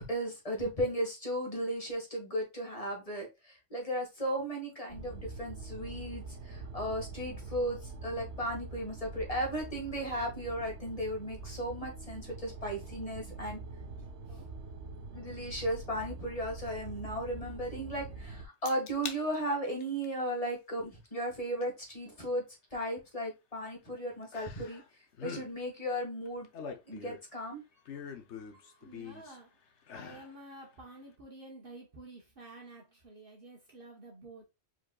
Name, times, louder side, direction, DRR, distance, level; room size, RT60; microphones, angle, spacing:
voice 1, 0.0-13.6 14.3-14.4 15.1-22.4 22.7-24.8 25.2-26.5 26.9-27.6 28.5-28.8, equal, 30° left, 2.1 m, -35 dB
sound 1, 4.9-18.4, right 3 dB, 80° right, 1.2 m, -44 dB
sound 2, 18.6-19.2 19.6-20.0 21.6-21.7 24.3-24.9 25.1-25.5 26.2-27.3 27.8-29.4 29.8-30.3 30.7-30.8, left 6 dB, 85° left, 1.1 m, -44 dB
voice 2, 28.8-29.6 29.9-34.5, right 2 dB, 55° right, 1.5 m, -50 dB
4.9 x 4.5 x 2.4 m
omnidirectional pair, 1.1 m